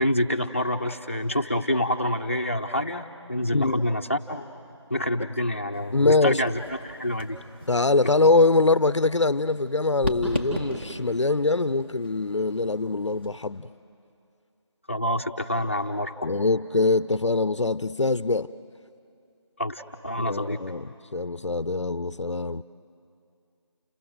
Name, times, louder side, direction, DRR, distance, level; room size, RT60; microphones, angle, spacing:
voice 1, 0.0-4.5 4.9-7.4 8.0-8.1 14.9-16.3 19.6-20.6, left 1 dB, 25° left, 0.8 m, -27 dB
voice 2, 3.5-3.8 5.9-6.4 7.7-13.7 16.2-18.5 20.3-22.6, left 3 dB, 75° left, 0.6 m, -23 dB
sound 1, 5.7-13.4, left 1 dB, 25° right, 2.6 m, -37 dB
29.5 x 18.5 x 7.8 m
figure-of-eight pair, 180°, 15 cm